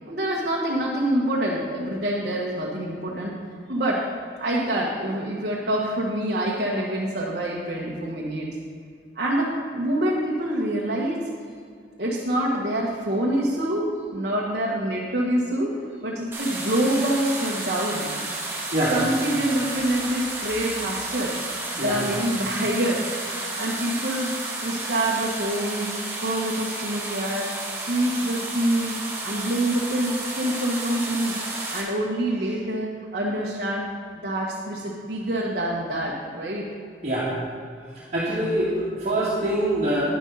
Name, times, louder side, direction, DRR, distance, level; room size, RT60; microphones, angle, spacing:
voice 1, 0.0-3.3 3.7-4.1 4.4-8.5 9.1-11.2 12.0-18.1 18.9-21.3 21.7-24.3 24.6-25.9 26.2-27.5 27.8-28.9 29.2-31.4 31.7-33.9 34.1-36.7, right 1 dB, 60° right, -5 dB, 1.5 m, -26 dB
sound 1, 16.3-31.8, right 2 dB, 15° right, 2.1 m, -32 dB
voice 2, 38.0-40.0, right 1 dB, 40° right, -9 dB, 2.1 m, -24 dB
11.0 x 10.5 x 4.1 m, 2.1 s
head